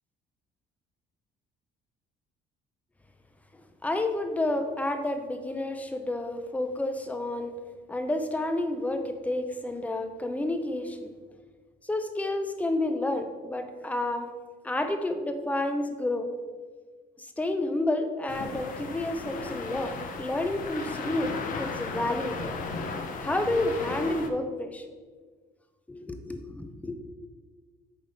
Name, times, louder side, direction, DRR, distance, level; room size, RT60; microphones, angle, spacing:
voice 1, 3.8-7.5 7.9-11.1 11.8-14.3 14.6-16.3 17.2-22.6 23.2-24.8 25.9-26.9, left 2 dB, 10° left, 7 dB, 0.6 m, -30 dB
sound 1, 18.3-24.3, left 4 dB, 55° left, 0.8 m, -35 dB
8.8 x 3.5 x 4.1 m, 1.5 s
cardioid pair, 110°, 17 cm